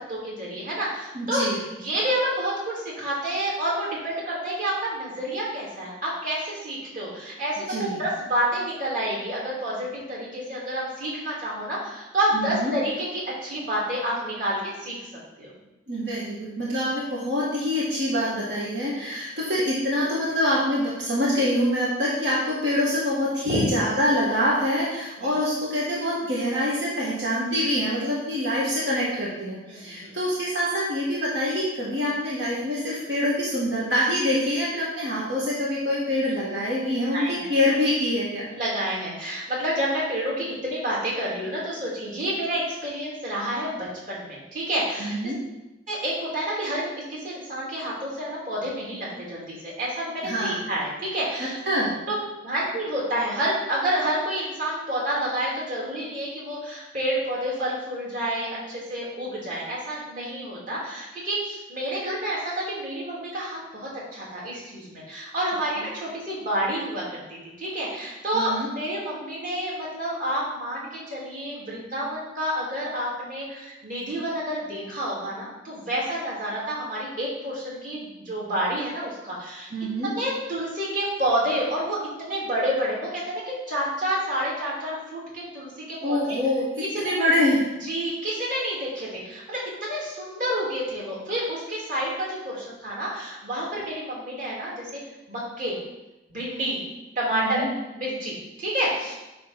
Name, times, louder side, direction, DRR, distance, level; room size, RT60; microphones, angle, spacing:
voice 1, 0.1-1.5 1.7-15.0 15.4-15.5 23.4-23.6 25.2-25.3 29.7-30.1 37.1-37.5 38.5-45.2 45.9-51.6 52.1-52.2 52.4-79.7 80.0-86.4 86.9-87.2 87.8-95.0 95.3-95.8 96.3-96.8 97.1-97.7 97.9-99.1, right 1 dB, 50° right, -5 dB, 2.8 m, -29 dB
voice 2, 1.1-1.6 7.7-8.0 12.3-12.8 15.9-38.5 45.0-45.4 50.2-50.6 51.7-51.9 65.8-65.9 68.3-68.7 79.7-80.1 86.0-86.6 87.0-87.7 97.3-97.7, left 1 dB, 75° right, -6 dB, 1.7 m, -25 dB
9.5 x 3.3 x 5.7 m, 0.99 s
head